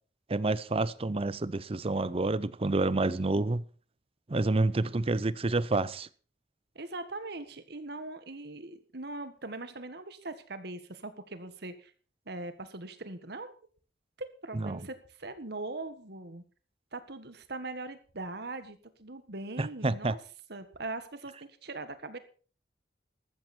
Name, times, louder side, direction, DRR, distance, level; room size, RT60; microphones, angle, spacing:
voice 1, 0.3-3.7 4.3-6.1 14.5-14.8 19.6-20.2, right 2 dB, 30° right, 0.6 m, -28 dB
voice 2, 6.8-11.9 12.3-13.6 14.4-16.4 16.9-20.2 20.5-22.2, right 2 dB, 60° right, 1.7 m, -41 dB
14.0 x 13.0 x 4.4 m
head